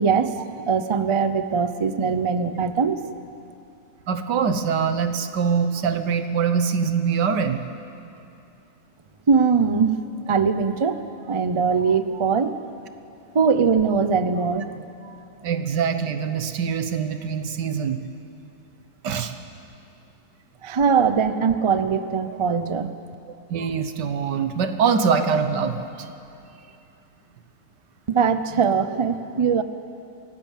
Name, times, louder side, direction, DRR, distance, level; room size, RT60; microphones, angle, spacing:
voice 1, 0.0-3.1 9.3-10.0 10.3-12.5 13.3-14.7 15.0-15.2 20.6-22.9 28.1-29.6, right 6 dB, 40° right, 11 dB, 0.4 m, -21 dB
voice 2, 4.1-7.6 15.4-18.0 19.0-19.4 23.5-26.1, right 6 dB, 90° right, 9 dB, 1.7 m, -23 dB
25.0 x 17.5 x 7.4 m, 2.7 s
omnidirectional pair, 1.8 m